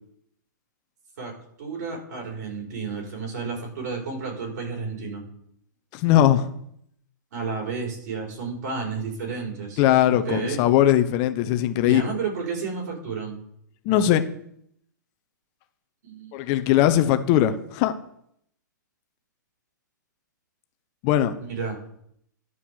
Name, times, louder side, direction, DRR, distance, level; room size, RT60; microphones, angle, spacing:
voice 1, 1.6-5.2 7.3-9.8 10.1-10.6 11.8-13.4 16.0-16.3 21.4-21.8, right 5 dB, 60° right, 0 dB, 4.7 m, -31 dB
voice 2, 5.9-6.5 9.8-12.0 13.8-14.2 16.3-17.9 21.0-21.4, left 12 dB, 35° left, 9 dB, 0.9 m, -20 dB
11.0 x 5.7 x 6.4 m, 0.71 s
figure-of-eight pair, 115°, 11 cm